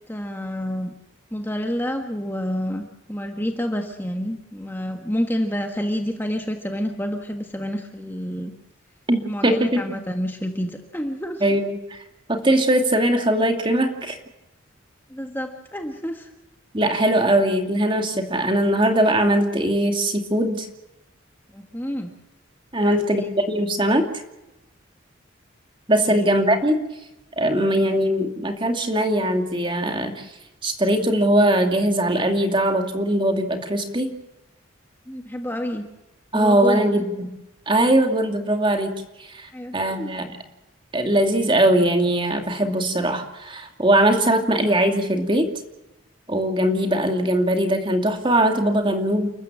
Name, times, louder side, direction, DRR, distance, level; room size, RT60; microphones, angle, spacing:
voice 1, 0.1-0.9 1.3-8.5 9.2-11.4 15.1-16.3 21.5-22.1 22.8-23.3 26.1-26.3 35.1-35.8 36.3-36.8 39.5-40.1, equal, 10° left, 4 dB, 1.5 m, -29 dB
voice 2, 9.1-9.8 11.4-12.0 12.3-14.2 16.7-20.7 22.7-24.2 25.9-26.9 27.4-30.3 30.6-34.1 36.3-37.3 37.7-38.9 39.2-40.4 40.9-45.5 46.3-49.3, right 1 dB, 25° right, 5 dB, 2.6 m, -21 dB
30.0 x 14.0 x 7.6 m, 0.94 s
head